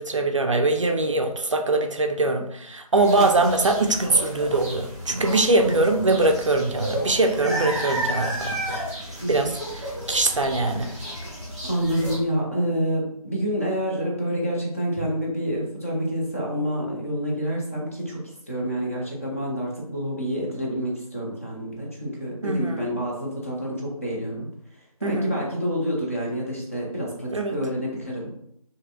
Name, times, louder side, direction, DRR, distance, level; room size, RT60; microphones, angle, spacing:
voice 1, 0.0-8.6 9.3-9.6 10.1-10.9 22.4-22.8 25.0-25.4 27.3-27.6, right 2 dB, 55° right, 5 dB, 0.4 m, -22 dB
sound 1, 2.9-12.2, right 1 dB, 5° right, 0.8 m, -32 dB
voice 2, 11.6-24.5 25.0-28.3, equal, 20° left, -3 dB, 0.5 m, -28 dB
3.0 x 2.6 x 2.5 m, 0.71 s
figure-of-eight pair, 160°, 20 cm